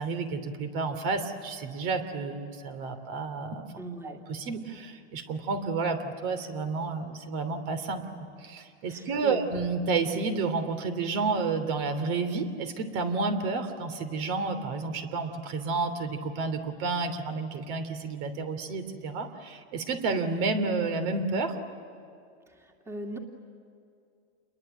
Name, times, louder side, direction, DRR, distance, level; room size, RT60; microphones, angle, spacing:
voice 1, 0.0-3.7 4.0-8.0 8.4-21.6, right 4 dB, 50° right, 8 dB, 3.1 m, -30 dB
voice 2, 3.8-4.2 8.9-9.4 22.5-23.2, right 1 dB, 5° right, 2 dB, 2.6 m, -40 dB
29.0 x 22.5 x 9.1 m, 2.5 s
supercardioid pair, 145°, 35 cm